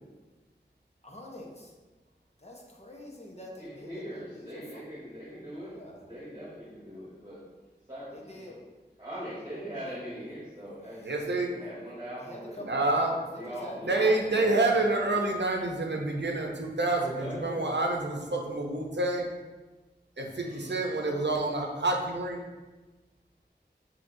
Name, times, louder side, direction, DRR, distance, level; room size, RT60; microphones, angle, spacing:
voice 1, 1.0-1.7 2.4-4.8 5.7-6.0 8.1-8.6 9.9-10.0 12.2-14.9, left 1 dB, 35° left, -1 dB, 0.9 m, -45 dB
voice 2, 3.6-7.4 7.9-8.6 9.0-12.7 13.3-14.5 17.1-17.8 18.1-19.0 20.4-21.0, equal, 20° right, -9 dB, 1.4 m, -42 dB
voice 3, 11.0-11.5 12.6-13.1 13.8-19.3 20.2-22.4, right 2 dB, 80° right, 1 dB, 0.7 m, -28 dB
6.9 x 2.9 x 2.6 m, 1.2 s
wide cardioid pair, 40°, 18 cm